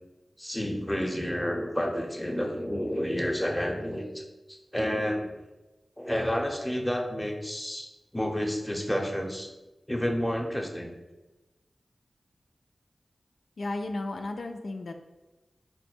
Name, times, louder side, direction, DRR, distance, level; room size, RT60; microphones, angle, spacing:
voice 1, 0.4-4.2 4.7-5.3 6.0-7.9 8.1-9.5 9.9-10.9, equal, 5° left, 1 dB, 0.7 m, -30 dB
voice 2, 13.6-14.9, left 2 dB, 80° left, 4 dB, 0.3 m, -34 dB
4.6 x 2.2 x 4.3 m, 1.1 s
wide cardioid pair, 70°, 0 cm